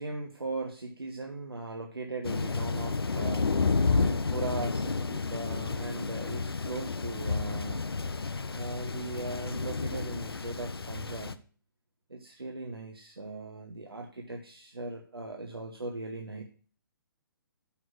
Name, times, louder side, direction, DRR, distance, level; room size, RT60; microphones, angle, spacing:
voice 1, 0.0-3.6 3.9-7.8 8.5-11.4 12.1-16.4, right 3 dB, 90° right, 2 dB, 1.1 m, -39 dB
Thunder, 2.2-11.3, left 4 dB, 85° left, 0.6 m, -31 dB
6.2 x 5.7 x 6.2 m, 0.41 s
figure-of-eight pair, 135°, 12 cm